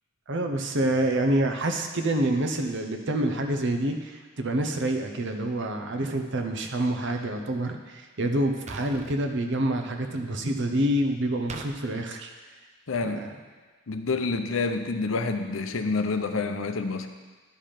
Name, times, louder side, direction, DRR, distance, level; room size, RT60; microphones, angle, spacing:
voice 1, 0.3-12.3 13.0-13.3, right 1 dB, 60° right, 5 dB, 0.9 m, -27 dB
sound 1, 8.7-9.2 11.5-11.7, right 3 dB, 35° right, 0.6 m, -39 dB
voice 2, 12.9-13.2 13.9-17.1, left 3 dB, 70° left, 7 dB, 0.7 m, -28 dB
10.5 x 5.1 x 5.8 m, 1.4 s
head